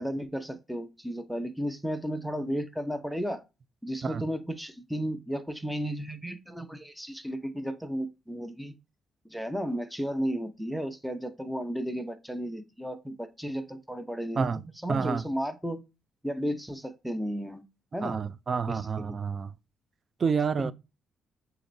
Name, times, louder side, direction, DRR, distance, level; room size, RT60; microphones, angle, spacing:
voice 1, 0.0-3.4 3.8-8.7 9.2-14.5 14.8-15.8 16.2-17.6 17.9-18.2 18.7-19.2 20.6-20.7, equal, ahead, 0.7 m, -34 dB
voice 2, 14.9-15.2 18.0-19.5 20.2-20.7, right 5 dB, 40° right, 0.4 m, -28 dB
6.4 x 3.0 x 2.6 m
cardioid pair, 90°, 0 cm